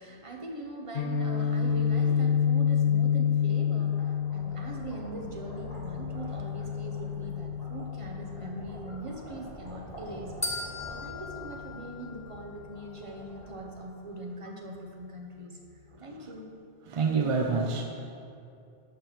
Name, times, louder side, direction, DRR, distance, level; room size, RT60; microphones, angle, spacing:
voice 1, 0.0-15.6 16.0-16.5, right 1 dB, 35° right, 0 dB, 0.9 m, -41 dB
Guitar, 1.0-8.8, left 7 dB, 65° left, 0.8 m, -28 dB
sound 1, 3.2-14.4, equal, 35° left, 2.1 m, -47 dB
sound 2, 10.4-12.7, left 2 dB, 20° left, 0.6 m, -38 dB
voice 2, 15.9-16.3 16.9-17.8, right 4 dB, 50° right, 3 dB, 0.4 m, -28 dB
6.7 x 5.2 x 5.9 m, 2.5 s
omnidirectional pair, 1.1 m